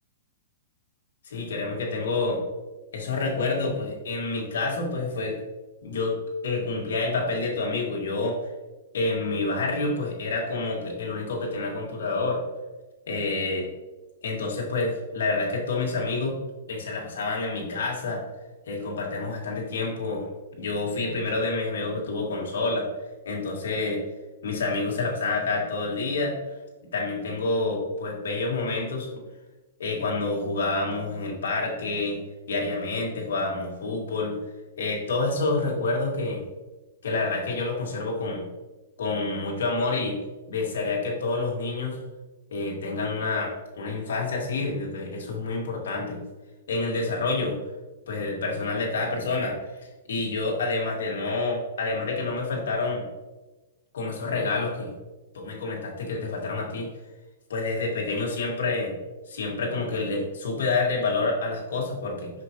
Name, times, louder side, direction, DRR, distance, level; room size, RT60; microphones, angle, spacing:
voice 1, 1.2-2.4 2.9-5.4 5.8-6.2 6.4-8.4 8.9-12.4 13.1-13.7 14.2-16.4 16.7-18.2 18.7-20.3 20.6-22.9 23.3-24.0 24.4-26.3 26.9-29.1 29.8-32.2 32.5-34.3 34.8-36.4 37.0-38.5 39.0-40.2 40.5-42.0 42.5-46.2 46.7-47.6 48.1-49.6 49.8-53.0 53.9-54.9 55.3-56.9 57.5-58.9 59.3-62.3, left 3 dB, 85° left, -2 dB, 2.0 m, -28 dB
6.1 x 5.2 x 3.0 m, 1.1 s
hypercardioid pair, 165°, 0 cm